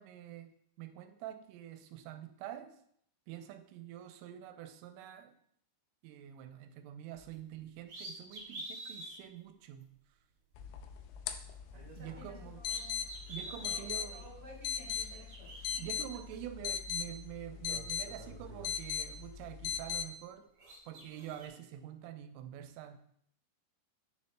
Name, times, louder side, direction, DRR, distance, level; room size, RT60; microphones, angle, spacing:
voice 1, 0.0-2.8 3.3-5.3 6.0-9.9 12.0-12.6 13.3-14.3 15.8-20.5 20.9-23.0, right 11 dB, 85° right, 7 dB, 3.1 m, -46 dB
sound 1, 7.1-7.3 7.8-9.2 9.8-9.9 11.6-12.4 12.6-13.7 14.6-15.8 17.0-17.1 17.5-19.1 19.5-20.3 20.6-21.5, right 2 dB, 65° right, 1.4 m, -48 dB
sound 2, 10.6-20.1, left 8 dB, 90° left, 2.4 m, -40 dB
voice 2, 11.9-13.0 13.4-16.0, left 1 dB, 20° left, -6 dB, 2.3 m, -54 dB
9.7 x 7.0 x 2.2 m, 0.68 s
omnidirectional pair, 5.7 m